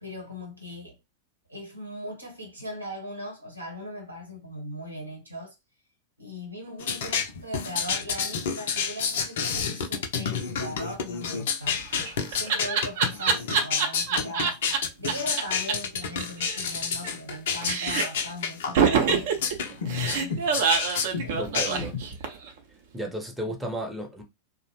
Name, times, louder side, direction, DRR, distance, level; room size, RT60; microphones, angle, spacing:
voice 1, 0.0-1.0 1.5-5.5 6.2-11.8 12.3-14.6 15.0-19.3 19.7-20.4 21.2-21.5 23.4-23.5, left 1 dB, 85° right, 0.9 m, -39 dB
sound 1, 6.8-22.1, left 6 dB, 60° left, 0.4 m, -29 dB
Laughter, 11.7-14.8 15.1-15.2 15.4-15.5 15.7-15.8 16.0-17.3 17.6-18.2 18.7-22.5, right 6 dB, 55° right, 0.6 m, -25 dB
voice 2, 21.4-21.9 22.9-24.2, right 1 dB, 5° right, 0.6 m, -33 dB
2.4 x 2.0 x 2.9 m
figure-of-eight pair, 90°, 0 cm